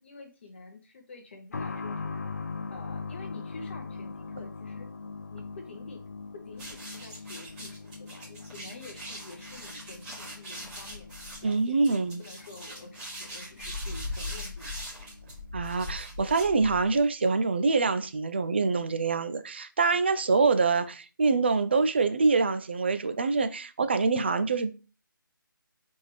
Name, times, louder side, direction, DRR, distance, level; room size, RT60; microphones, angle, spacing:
voice 1, 0.0-2.3 2.7-4.9 5.3-11.1 11.4-14.8, left 3 dB, 35° left, 0.9 m, -48 dB
sound 1, 1.5-15.9 16.2-16.3 17.3-17.4, left 4 dB, 50° left, 0.4 m, -42 dB
sound 2, 6.5-17.0, left 1 dB, 10° right, 1.2 m, -40 dB
voice 2, 11.4-12.2 15.5-24.7, right 4 dB, 30° right, 0.3 m, -25 dB
4.6 x 3.5 x 3.2 m
figure-of-eight pair, 155°, 11 cm